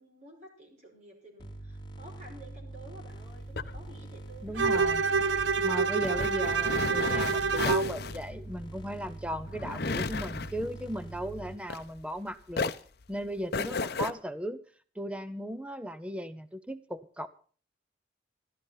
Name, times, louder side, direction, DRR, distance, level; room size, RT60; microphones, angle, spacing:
voice 1, 0.0-4.6, right 1 dB, 40° right, 0 dB, 5.4 m, -51 dB
sound 1, 1.4-11.5, right 2 dB, 25° left, 2.6 m, -44 dB
sound 2, 3.1-12.2 12.5-14.1, left 4 dB, 55° left, 0.8 m, -35 dB
voice 2, 4.4-5.0 5.6-12.7 13.1-14.6 15.0-17.3, equal, 5° right, 13 dB, 0.8 m, -37 dB
Bowed string instrument, 4.6-8.0, right 5 dB, 75° right, 0.6 m, -27 dB
14.0 x 13.0 x 5.8 m, 0.42 s
head